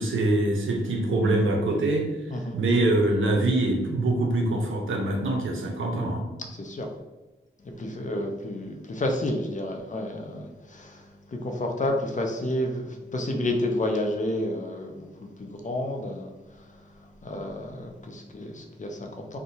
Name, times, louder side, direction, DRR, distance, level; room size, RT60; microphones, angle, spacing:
voice 1, 0.0-2.1 2.5-6.2, right 2 dB, 75° right, 1 dB, 0.6 m, -24 dB
voice 2, 6.5-6.9 7.6-16.3 16.6-19.4, left 1 dB, 40° left, 2 dB, 0.5 m, -31 dB
2.7 x 2.1 x 2.8 m, 1.1 s
cardioid pair, 55°, 20 cm